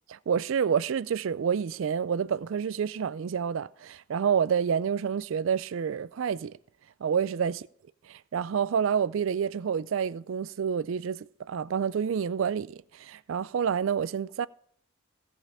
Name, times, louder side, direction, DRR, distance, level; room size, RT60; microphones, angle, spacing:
voice 1, 0.1-6.6 7.0-7.7 8.1-14.5, right 7 dB, 65° right, 0.4 m, -28 dB
16.0 x 5.5 x 4.9 m
head